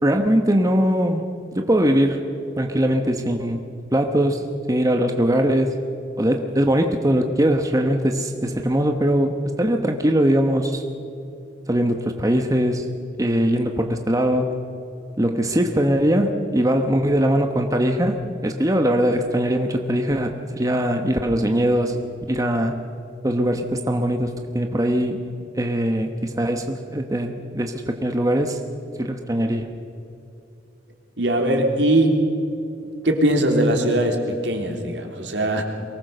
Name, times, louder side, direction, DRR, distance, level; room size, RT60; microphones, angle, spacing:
voice 1, 0.0-2.2 2.6-3.6 3.9-5.8 6.2-9.3 9.6-10.8 11.7-12.9 13.2-14.5 15.2-18.2 18.4-21.9 22.3-22.8 23.2-25.2 25.6-28.6 29.0-29.7, equal, 20° right, 5 dB, 1.0 m, -21 dB
voice 2, 31.2-32.2 33.0-35.6, right 1 dB, 75° right, 3 dB, 3.0 m, -20 dB
23.5 x 19.0 x 6.7 m, 2.6 s
head